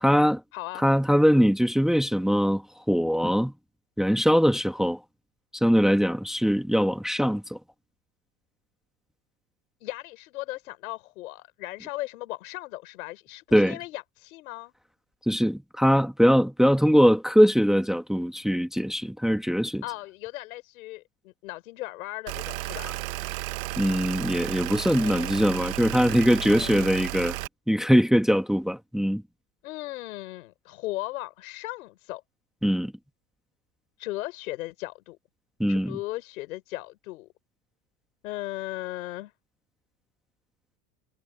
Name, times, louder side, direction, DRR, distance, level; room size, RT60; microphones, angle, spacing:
voice 1, 0.0-0.4 0.8-2.6 2.9-3.5 4.0-5.0 5.6-7.6 13.5-13.8 15.3-19.8 23.8-27.4 27.7-29.2 32.6-32.9 35.6-36.0, equal, ahead, 1.8 m, -22 dB
voice 2, 0.5-0.9 9.8-14.7 19.8-22.9 25.0-25.4 26.3-27.0 29.6-32.2 34.0-35.2 35.7-37.3 38.2-39.3, left 18 dB, 85° left, 4.5 m, -37 dB
sound 1, 22.3-27.5, right 19 dB, 85° right, 1.4 m, -33 dB
supercardioid pair, 105°, 41 cm